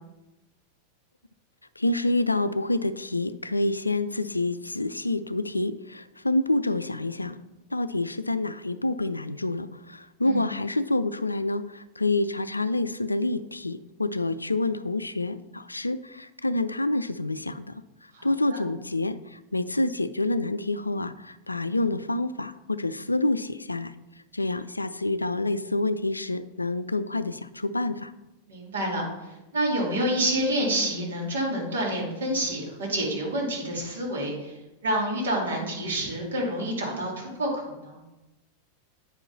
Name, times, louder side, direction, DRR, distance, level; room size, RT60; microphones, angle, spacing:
voice 1, 1.8-17.8 18.2-23.9 24.3-28.1, left 2 dB, 80° left, 13 dB, 0.3 m, -27 dB
voice 2, 18.1-18.6 28.5-29.0 29.5-34.5 34.8-38.0, right 1 dB, 65° right, -3 dB, 2.5 m, -28 dB
8.9 x 5.3 x 4.0 m, 0.98 s
figure-of-eight pair, 90°, 0 cm